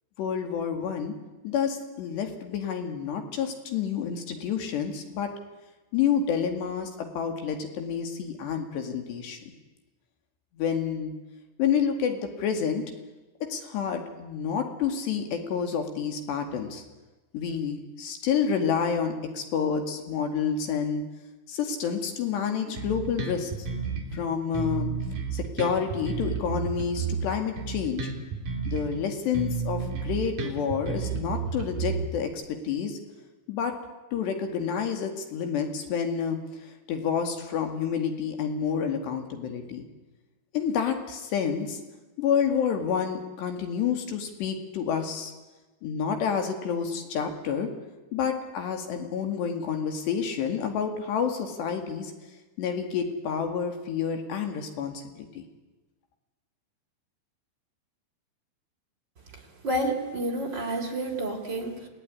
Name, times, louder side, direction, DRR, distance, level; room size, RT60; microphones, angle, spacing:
voice 1, 0.2-1.2 1.4-5.3 5.9-9.4 10.6-11.1 11.6-12.8 13.5-16.8 17.3-21.0 21.5-23.5 24.1-24.9 25.3-28.1 28.7-32.3 32.6-33.0 33.5-33.7 34.1-36.4 36.9-39.8 40.5-41.8 42.2-45.3 45.8-47.7 48.1-52.1 52.6-55.0 55.4-55.5, left 7 dB, 65° left, 5 dB, 4.1 m, -29 dB
Bass guitar, 22.7-24.2 24.5-29.0 29.3-32.3, right 5 dB, 50° right, 4.1 m, -32 dB
voice 2, 59.3-61.9, right 1 dB, 25° right, 2 dB, 3.2 m, -30 dB
28.5 x 18.0 x 9.8 m, 1.2 s
omnidirectional pair, 5.6 m